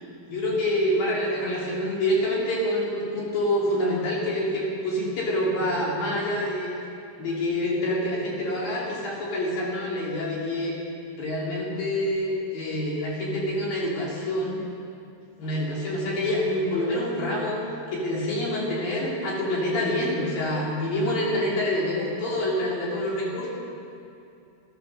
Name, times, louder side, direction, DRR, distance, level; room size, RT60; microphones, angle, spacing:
voice 1, 0.3-6.7 7.2-10.7 11.2-14.7 15.4-17.6 17.9-23.5, left 1 dB, 55° left, -5 dB, 4.2 m, -26 dB
13.5 x 12.5 x 6.5 m, 2.6 s
omnidirectional pair, 5.2 m